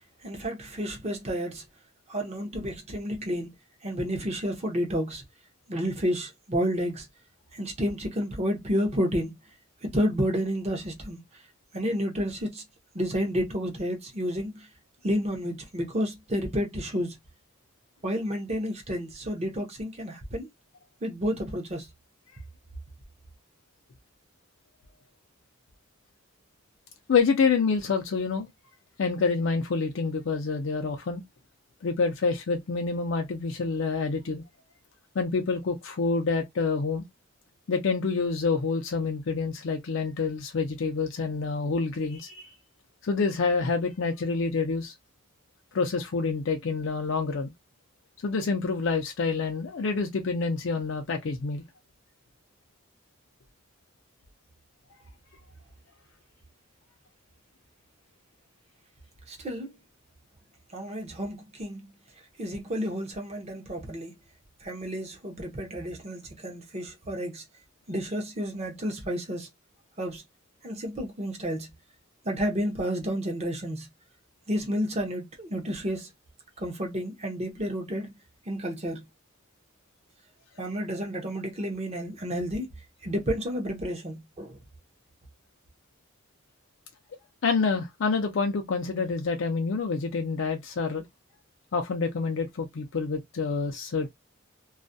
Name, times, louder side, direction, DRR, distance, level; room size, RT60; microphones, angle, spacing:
voice 1, 0.2-1.6 2.1-3.5 3.8-5.2 5.7-7.1 7.5-9.4 9.8-11.2 11.7-12.6 12.9-14.7 15.0-17.2 18.0-20.5 21.0-21.9 59.3-59.8 60.7-61.9 62.4-64.1 64.6-67.4 67.9-69.5 70.0-70.2 70.6-71.7 72.2-73.9 74.5-76.1 76.6-78.2 78.5-79.0 80.6-82.7 83.0-84.6, equal, 30° right, 0.6 m, -30 dB
voice 2, 27.1-28.5 29.0-31.2 31.8-34.4 35.2-37.0 37.7-42.6 43.0-44.9 45.7-47.5 48.2-51.6 87.4-91.0 91.7-94.1, left 4 dB, 60° left, 0.4 m, -27 dB
2.3 x 2.0 x 2.5 m
head